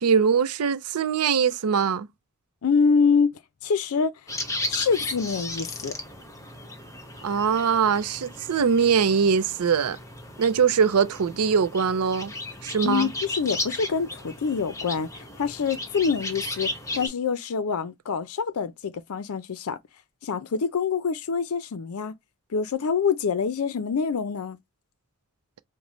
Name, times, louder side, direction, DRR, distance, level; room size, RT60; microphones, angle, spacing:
voice 1, 0.0-2.1 7.2-10.0 10.4-12.3 12.6-13.1, right 6 dB, 80° right, 0.5 m, -22 dB
voice 2, 2.6-3.3 3.6-4.1 4.7-5.9 12.8-16.7 16.9-19.8 20.2-22.1 22.5-24.6, left 5 dB, 70° left, 0.5 m, -25 dB
sound 1, 4.3-17.1, left 2 dB, 15° left, 0.9 m, -35 dB
5.1 x 2.1 x 3.1 m
head